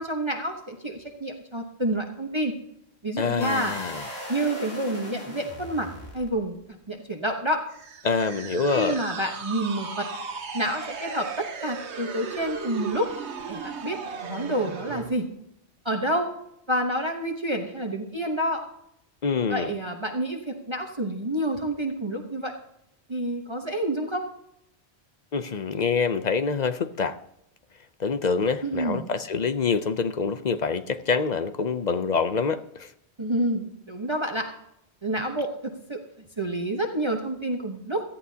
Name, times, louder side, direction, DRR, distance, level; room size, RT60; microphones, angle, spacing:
voice 1, 0.0-2.6 3.0-3.7 4.3-5.9 6.1-6.6 6.9-7.6 8.7-10.1 10.5-13.1 13.5-14.0 14.2-15.3 15.8-16.3 16.7-18.6 19.5-22.5 23.1-24.2 28.6-29.1 33.2-34.5 35.0-36.0 36.4-38.0, right 1 dB, 25° right, 1.0 m, -28 dB
voice 2, 3.2-4.0 8.0-9.0 19.2-19.7 25.3-27.2 28.0-32.9, left 5 dB, 50° left, 0.6 m, -26 dB
sound 1, 3.4-6.6, left 1 dB, 65° left, 2.8 m, -38 dB
sound 2, 7.7-15.1, right 5 dB, 90° right, 1.3 m, -36 dB
17.5 x 14.0 x 2.8 m
omnidirectional pair, 1.1 m